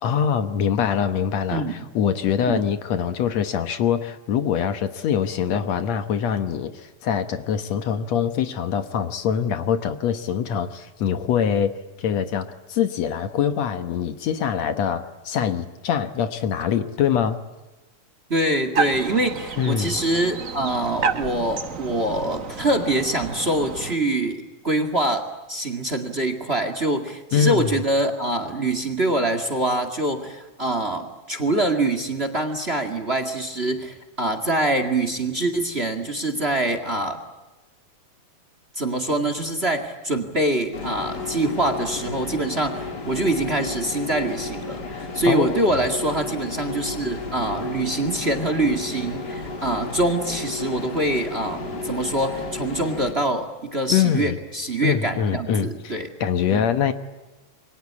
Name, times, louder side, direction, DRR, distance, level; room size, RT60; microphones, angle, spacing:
voice 1, 0.0-17.4 19.6-20.0 27.3-27.7 45.3-45.7 53.9-54.4 54.8-56.9, left 8 dB, 65° left, 10 dB, 2.2 m, -24 dB
voice 2, 1.5-1.9 2.5-2.6 18.3-37.2 38.8-56.1 56.5-56.6, right 1 dB, 25° right, 9 dB, 2.0 m, -24 dB
sound 1, 18.7-24.0, right 5 dB, 70° right, 0.7 m, -30 dB
sound 2, 40.7-53.1, left 3 dB, 35° left, 3.1 m, -33 dB
28.5 x 23.0 x 8.6 m, 1.1 s
omnidirectional pair, 3.4 m